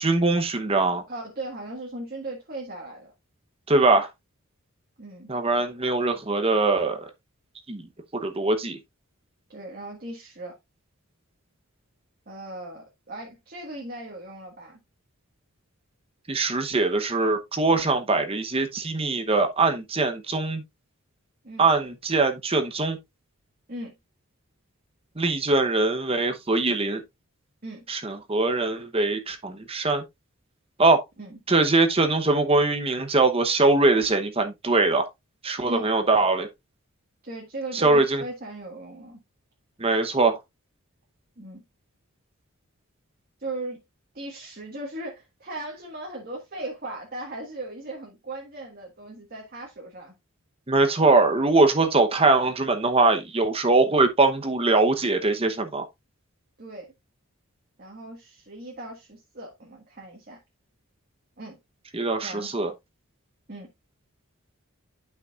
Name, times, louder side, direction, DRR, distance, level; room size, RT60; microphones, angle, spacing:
voice 1, 0.0-1.0 3.7-4.1 5.3-7.0 7.7-7.8 8.2-8.8 16.3-20.6 21.6-23.0 25.2-27.0 27.9-30.0 30.8-31.0 31.5-35.1 35.4-36.5 37.7-38.2 39.8-40.4 50.7-55.9 61.9-62.7, right 3 dB, 25° right, 0.9 m, -22 dB
voice 2, 1.1-3.1 5.0-5.3 9.5-10.5 12.3-14.8 21.4-21.7 23.7-23.9 27.6-27.8 31.2-31.4 35.6-35.9 37.2-39.2 41.4-41.6 43.4-43.8 44.1-50.1 56.6-56.9 57.8-60.4 61.4-61.6 62.2-62.5 63.5-63.7, right 2 dB, 45° right, 1.7 m, -38 dB
10.5 x 5.9 x 2.5 m
head